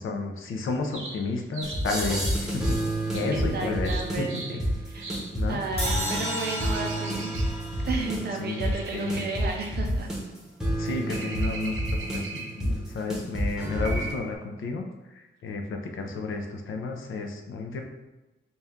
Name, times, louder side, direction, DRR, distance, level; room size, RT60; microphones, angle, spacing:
voice 1, 0.0-2.8 3.1-3.9 4.2-4.4 5.3-5.6 8.4-9.2 10.8-11.8 12.1-17.8, left 3 dB, 75° left, 3 dB, 0.6 m, -32 dB
sound 1, 0.9-1.9 3.1-3.3 3.8-4.6 5.0-5.3 6.1-7.5 8.5-9.8 11.1-12.7 13.8-14.4, right 3 dB, 75° right, 1.0 m, -40 dB
sound 2, 1.6-14.1, right 1 dB, 5° right, 0.7 m, -30 dB
voice 2, 3.3-5.2 5.5-7.4 7.8-10.1, right 3 dB, 50° right, 2 dB, 0.6 m, -33 dB
sound 3, 5.8-9.0, equal, 30° left, 0.9 m, -34 dB
4.1 x 2.3 x 3.5 m, 1.1 s
wide cardioid pair, 165°, 21 cm